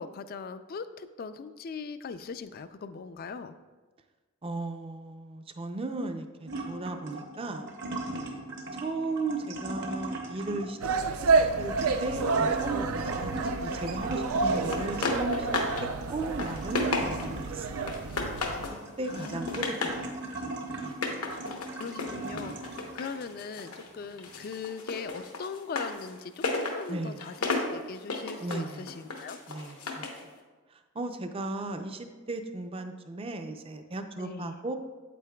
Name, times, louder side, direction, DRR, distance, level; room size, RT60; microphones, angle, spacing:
voice 1, 0.0-3.6 14.4-14.5 19.1-19.7 21.4-29.4 34.2-34.6, left 5 dB, 45° left, 12 dB, 0.3 m, -40 dB
voice 2, 4.4-7.7 8.8-11.0 11.2-11.3 11.6-11.7 12.0-15.5 16.1-17.8 19.0-19.8 20.0-21.0 26.9-27.2 28.4-28.9 29.5-30.1 30.7-34.8, right 2 dB, 25° right, 7 dB, 0.4 m, -36 dB
sound 1, 6.5-23.0 23.5-24.5, right 2 dB, 50° right, 0.9 m, -38 dB
sound 2, 10.8-18.7, right 4 dB, 85° right, 0.4 m, -29 dB
sound 3, 14.7-15.9 16.2-17.4 17.9-18.8 19.2-20.0 20.9-23.9 24.2-30.2, left 3 dB, 85° left, 0.9 m, -34 dB
8.4 x 8.1 x 2.2 m, 1.3 s
head